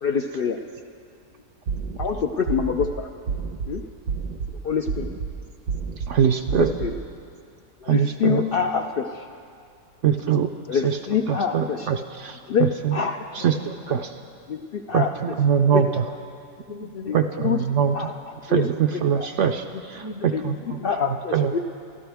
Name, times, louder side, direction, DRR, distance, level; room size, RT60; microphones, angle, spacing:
voice 1, 0.0-0.6 2.0-3.1 3.7-3.8 4.6-5.1 6.5-6.9 7.8-9.3 10.7-11.9 12.5-13.2 14.5-15.1 15.7-15.8 17.1-17.6 17.9-18.1 18.5-19.3 20.3-20.4 20.7-21.6, left 6 dB, 80° left, 3 dB, 0.5 m, -26 dB
sound 1, 1.7-2.1 2.5-2.9 3.3-3.7 4.1-4.5 4.9-5.3 5.7-6.1 6.5-6.9, right 5 dB, 80° right, 1.5 m, -29 dB
voice 2, 6.1-6.7 7.9-8.4 10.0-11.0 11.3-13.0 13.4-14.1 14.9-16.0 17.1-18.1 18.4-19.6 20.4-20.5 21.0-21.5, right 8 dB, 65° right, 6 dB, 0.8 m, -23 dB
voice 3, 13.0-13.6 13.9-14.0 16.7-17.2 17.4-17.5 19.7-20.9, left 4 dB, 65° left, 7 dB, 1.3 m, -39 dB
26.5 x 13.0 x 3.5 m, 2.4 s
omnidirectional pair, 1.6 m